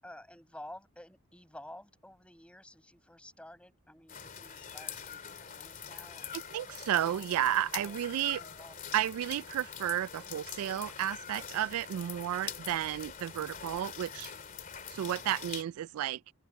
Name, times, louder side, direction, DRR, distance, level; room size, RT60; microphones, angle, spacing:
voice 1, 0.0-6.3 7.1-7.3 7.7-8.7, left 1 dB, 5° left, 6.6 m, -51 dB
sound 1, 4.1-15.6, left 8 dB, 35° left, 2.8 m, -44 dB
voice 2, 6.3-8.4 8.9-14.3 14.9-16.2, right 11 dB, 85° right, 0.3 m, -32 dB
open air
head